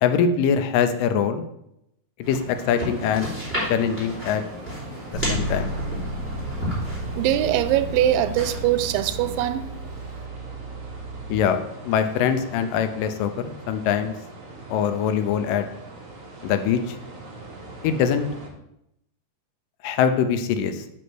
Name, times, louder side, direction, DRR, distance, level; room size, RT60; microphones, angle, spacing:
voice 1, 0.0-1.4 2.2-3.3 3.7-4.4 5.3-5.7 11.3-11.6 11.9-14.1 14.7-15.6 16.4-17.0 17.8-18.3 19.8-20.9, left 7 dB, 80° left, 2.2 m, -23 dB
sound 1, 2.2-9.4, equal, 5° left, 2.6 m, -33 dB
sound 2, 2.5-18.5, right 2 dB, 40° right, 1.1 m, -42 dB
Bass guitar, 5.1-11.4, right 1 dB, 50° left, 1.1 m, -33 dB
voice 2, 7.2-9.7, right 12 dB, 85° right, 2.3 m, -22 dB
6.4 x 5.4 x 6.0 m
omnidirectional pair, 4.0 m